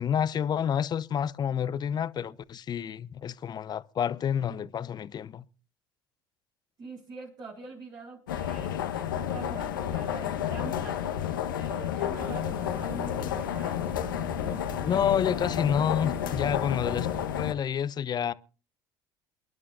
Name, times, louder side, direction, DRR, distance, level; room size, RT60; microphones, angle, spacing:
voice 1, 0.0-5.4 14.8-17.1 17.4-18.3, left 8 dB, 40° left, 0.8 m, -29 dB
voice 2, 6.8-11.0 11.5-13.8, right 3 dB, 45° right, 4.2 m, -44 dB
sound 1, 8.3-17.5, left 10 dB, 85° left, 1.2 m, -31 dB
sound 2, 12.2-17.3, right 1 dB, 15° right, 1.7 m, -43 dB
28.0 x 11.0 x 2.6 m
hypercardioid pair, 70°, 11 cm